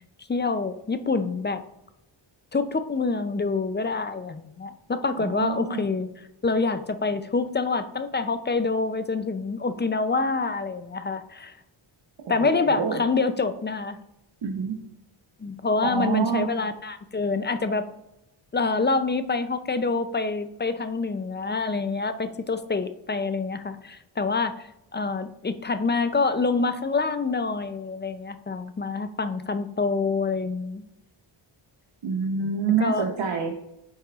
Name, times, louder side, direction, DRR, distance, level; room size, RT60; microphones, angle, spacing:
voice 1, 0.3-1.6 2.5-6.1 6.4-11.5 12.3-14.0 15.4-17.9 18.5-24.6 24.9-30.8 32.8-33.0, left 4 dB, 25° left, 10 dB, 0.4 m, -26 dB
voice 2, 5.2-5.9 12.3-13.0 14.4-14.8 15.8-16.5 32.0-33.6, right 5 dB, 65° right, 2 dB, 0.9 m, -27 dB
8.7 x 5.7 x 2.4 m, 0.88 s
wide cardioid pair, 100°, 49 cm